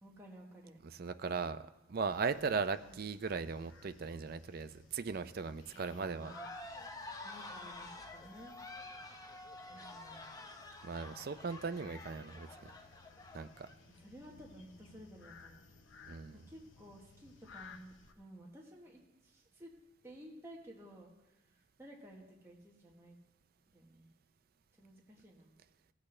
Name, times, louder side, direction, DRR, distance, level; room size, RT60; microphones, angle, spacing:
voice 1, 0.0-0.8 2.6-3.0 5.7-6.5 7.2-8.5 9.7-10.6 13.9-15.6 16.3-19.7 20.0-21.1 21.8-23.2 23.7-24.1 24.8-25.5, right 1 dB, 15° right, -3 dB, 1.2 m, -54 dB
voice 2, 0.8-1.6 1.9-6.3 10.8-12.5 13.3-13.7 16.1-16.4, right 5 dB, 50° right, 11 dB, 0.4 m, -38 dB
sound 1, 2.1-18.1, left 4 dB, 85° left, 0.7 m, -59 dB
sound 2, 6.2-13.7, left 2 dB, 20° left, 0.6 m, -49 dB
16.5 x 8.3 x 3.2 m, 0.98 s
head